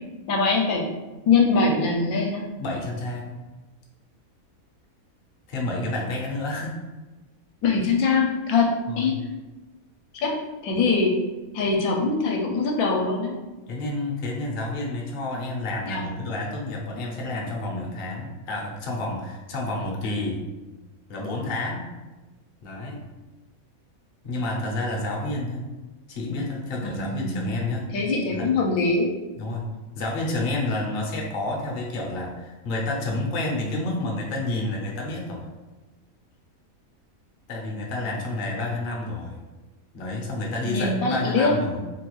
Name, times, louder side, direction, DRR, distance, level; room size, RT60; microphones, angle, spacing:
voice 1, 0.3-0.8 1.3-2.5 7.6-9.1 10.1-10.4 10.6-11.2 11.5-13.4 15.9-16.0 26.8-27.5 27.9-29.2 40.7-41.5, left 4 dB, 80° left, 0 dB, 1.0 m, -23 dB
voice 2, 2.6-3.4 5.5-6.9 8.9-9.3 13.7-20.4 21.1-21.9 22.6-23.1 24.2-25.7 26.1-27.9 28.3-28.5 29.4-35.4 37.5-39.4 39.9-41.8, left 2 dB, 55° left, -2 dB, 0.6 m, -29 dB
3.2 x 2.3 x 3.0 m, 1.1 s
omnidirectional pair, 1.5 m